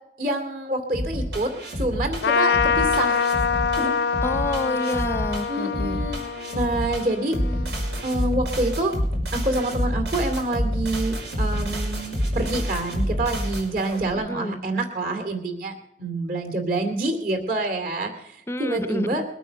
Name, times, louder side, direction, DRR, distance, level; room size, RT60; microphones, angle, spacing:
voice 1, 0.2-3.3 3.8-3.9 5.5-6.2 6.5-7.4 8.0-8.9 9.3-19.2, right 2 dB, 55° right, 6 dB, 2.6 m, -27 dB
sound 1, 0.9-14.1, equal, 80° right, 5.6 m, -28 dB
Trumpet, 2.2-8.0, left 6 dB, 80° left, 0.6 m, -25 dB
voice 2, 4.2-6.0 7.3-7.7 14.1-14.6 18.5-19.2, left 1 dB, 15° left, 12 dB, 0.6 m, -29 dB
22.0 x 9.0 x 6.8 m, 0.82 s
head